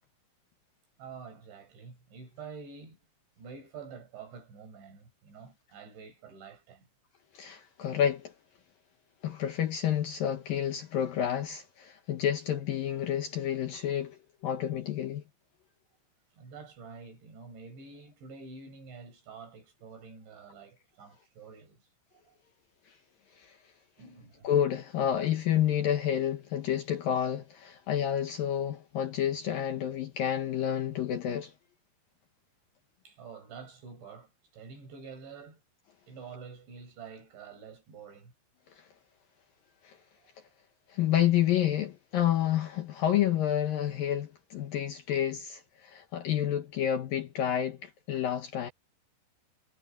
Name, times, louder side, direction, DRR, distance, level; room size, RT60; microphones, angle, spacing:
voice 1, 1.0-3.0 3.4-6.9 16.4-21.8 22.3-22.4 24.0-24.5 33.1-35.6 36.1-38.3, right 5 dB, 70° right, 8.7 m, -48 dB
voice 2, 7.3-8.3 9.2-15.2 23.4-23.6 24.4-31.5 38.8-38.9 39.8-40.0 40.9-48.7, left 10 dB, 65° left, 2.4 m, -29 dB
omnidirectional pair, 5.3 m